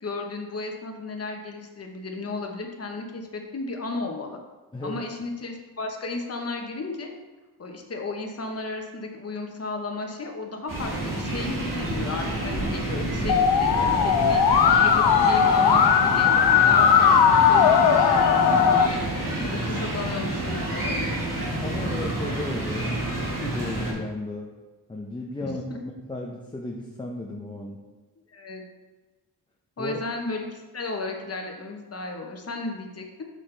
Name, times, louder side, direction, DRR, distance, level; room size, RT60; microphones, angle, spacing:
voice 1, 0.0-4.4 4.8-7.1 7.6-14.4 14.8-19.0 19.4-21.3 25.4-25.8 28.3-28.6 29.8-33.2, left 3 dB, 40° left, 2 dB, 1.0 m, -34 dB
voice 2, 4.7-5.0 21.6-24.5 24.9-27.8 29.8-30.0, left 1 dB, 15° left, -1 dB, 0.6 m, -35 dB
sound 1, 10.7-23.9, right 1 dB, 55° right, 2.0 m, -29 dB
Musical instrument, 13.3-18.9, left 7 dB, 85° left, 0.5 m, -18 dB
6.4 x 5.7 x 3.3 m, 1.2 s
wide cardioid pair, 100°, 38 cm